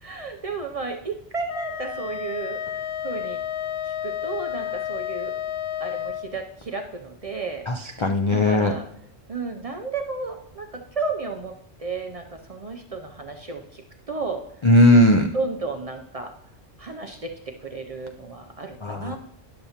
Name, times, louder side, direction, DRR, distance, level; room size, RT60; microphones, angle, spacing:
voice 1, 0.0-3.4 4.0-5.3 5.8-7.7 8.3-8.8 9.3-14.4 15.3-16.3 16.8-17.3 17.6-19.2, right 4 dB, 45° right, 3 dB, 0.5 m, -33 dB
Wind instrument woodwind instrument, 1.5-6.3, left 10 dB, 70° left, 0.8 m, -31 dB
voice 2, 7.7-8.7 14.6-15.3 18.8-19.2, left 1 dB, 50° left, 3 dB, 0.3 m, -17 dB
10.5 x 6.8 x 2.8 m, 0.77 s
omnidirectional pair, 1.1 m